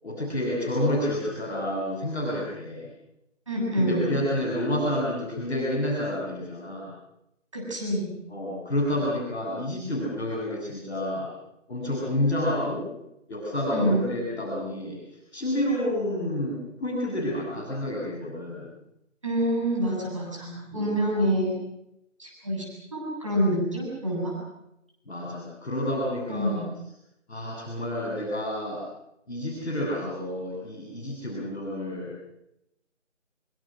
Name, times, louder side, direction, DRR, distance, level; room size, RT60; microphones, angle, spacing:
voice 1, 0.0-2.9 3.7-6.9 8.3-11.3 11.7-12.9 13.3-18.6 20.7-20.9 25.0-26.6 27.3-28.8 29.2-32.1, left 1 dB, ahead, -23 dB, 2.2 m, -29 dB
voice 2, 3.5-4.0 7.5-8.1 13.7-14.1 19.2-21.5 22.2-22.6 22.9-24.3 26.3-26.7, equal, 25° right, -2 dB, 7.8 m, -26 dB
25.5 x 25.0 x 6.3 m, 0.84 s
figure-of-eight pair, 175°, 38 cm